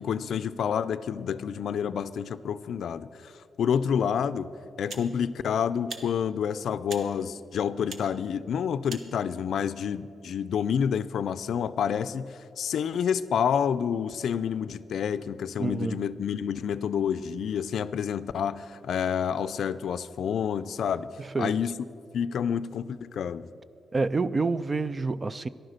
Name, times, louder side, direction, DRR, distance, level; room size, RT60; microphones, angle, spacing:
voice 1, 0.0-3.3 3.6-4.5 4.8-21.1 21.4-21.8 22.1-23.5, left 8 dB, 70° left, 0.4 m, -28 dB
sound 1, 3.9-4.1 4.9-5.1 5.9-6.1 6.9-7.1 7.9-8.1 8.9-9.1, right 4 dB, 55° right, 1.0 m, -40 dB
voice 2, 15.6-16.0 21.3-21.5 23.9-25.5, right 3 dB, 25° right, 0.3 m, -27 dB
14.0 x 11.0 x 6.6 m
wide cardioid pair, 150°, 0 cm